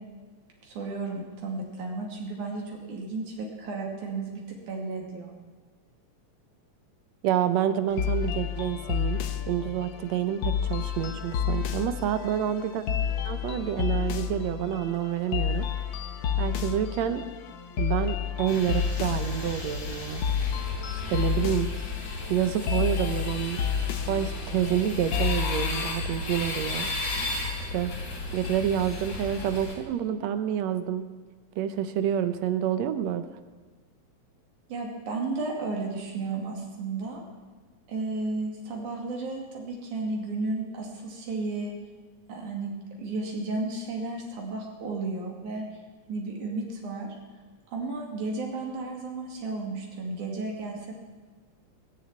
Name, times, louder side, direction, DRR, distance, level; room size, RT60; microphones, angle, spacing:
voice 1, 0.6-5.3 34.7-37.2 37.9-41.7 42.3-42.7 43.0-45.7 46.1-47.1 47.7-50.9, right 3 dB, 85° right, -1 dB, 3.9 m, -33 dB
voice 2, 7.2-9.2 9.5-12.8 13.2-15.7 16.4-17.2 17.8-20.2 20.9-21.7 22.3-23.6 24.1-26.9 27.7-27.9 28.3-31.1 31.6-33.3, right 10 dB, 70° right, 10 dB, 2.0 m, -28 dB
sound 1, 7.9-25.9, left 8 dB, 90° left, 1.0 m, -31 dB
sound 2, 18.5-29.8, left 2 dB, 70° left, 4.6 m, -34 dB
20.5 x 7.2 x 9.0 m, 1.4 s
omnidirectional pair, 3.4 m